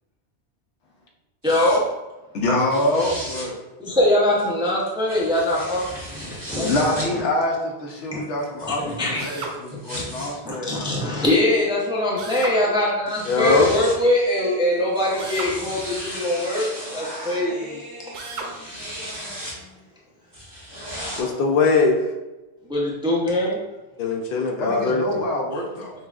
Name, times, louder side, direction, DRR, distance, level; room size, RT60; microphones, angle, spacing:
voice 1, 1.4-1.8 3.8-6.7 7.0-7.1 8.1-8.2 8.8-9.3 9.7-17.8 22.7-23.6, left 1 dB, 5° right, -5 dB, 0.5 m, -22 dB
sound 1, 1.4-1.8 2.6-3.5 4.4-7.1 8.0-10.3 11.2-11.3 12.7-12.8 13.1-14.0 14.8-17.4 18.2-19.6 20.3-21.2, equal, 20° right, 1.3 m, -36 dB
voice 2, 2.3-3.5 6.6-10.9 24.3-25.9, left 1 dB, 85° left, 0 dB, 1.0 m, -25 dB
Drill, 9.2-9.6 12.2-12.6 15.2-15.6 18.1-18.5, right 4 dB, 80° right, 0.9 m, -33 dB
voice 3, 13.3-13.7 21.2-22.0 24.0-25.2, left 4 dB, 60° left, 1 dB, 0.7 m, -20 dB
Human voice, 13.4-16.1 16.3-19.8 20.2-21.3, left 1 dB, 20° left, 1.1 m, -40 dB
5.6 x 2.4 x 2.3 m, 1.1 s
omnidirectional pair, 1.2 m